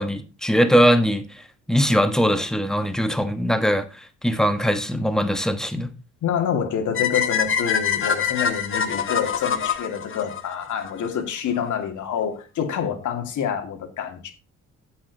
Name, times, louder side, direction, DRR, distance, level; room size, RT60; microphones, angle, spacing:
voice 1, 0.0-5.9, equal, ahead, 1.3 m, -21 dB
voice 2, 6.2-14.3, left 8 dB, 75° left, 2.1 m, -27 dB
sound 1, 6.9-11.1, left 7 dB, 45° left, 1.3 m, -24 dB
9.6 x 7.6 x 3.9 m
cardioid pair, 90°, 30 cm